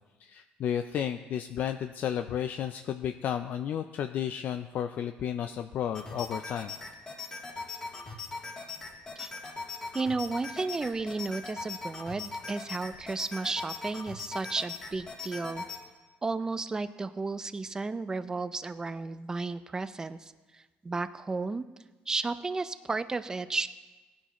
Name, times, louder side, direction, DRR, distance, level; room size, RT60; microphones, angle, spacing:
voice 1, 0.2-6.7, left 9 dB, 55° left, 8 dB, 0.4 m, -32 dB
sound 1, 5.9-15.8, left 4 dB, 25° left, 2.6 m, -40 dB
voice 2, 9.9-15.6 16.2-21.6 22.1-23.7, right 3 dB, 20° right, 13 dB, 0.5 m, -33 dB
18.0 x 10.0 x 3.1 m, 1.3 s
cardioid pair, 115°, 4 cm